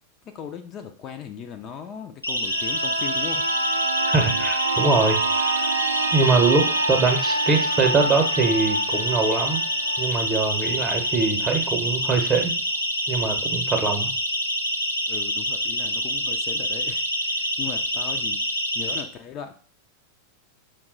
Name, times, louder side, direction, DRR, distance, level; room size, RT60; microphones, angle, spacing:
voice 1, 0.2-3.5 15.1-19.5, left 8 dB, 35° left, 6 dB, 0.4 m, -38 dB
Siren, 2.2-19.0, equal, 85° left, 0.6 m, -26 dB
sound 1, 2.4-12.0 12.4-12.5, right 3 dB, 75° right, 0.3 m, -28 dB
voice 2, 4.1-5.7 6.1-9.6 10.0-12.5 13.1-14.1, right 4 dB, 25° right, 4 dB, 0.8 m, -23 dB
5.8 x 2.2 x 3.8 m, 0.43 s
figure-of-eight pair, 90°, 0 cm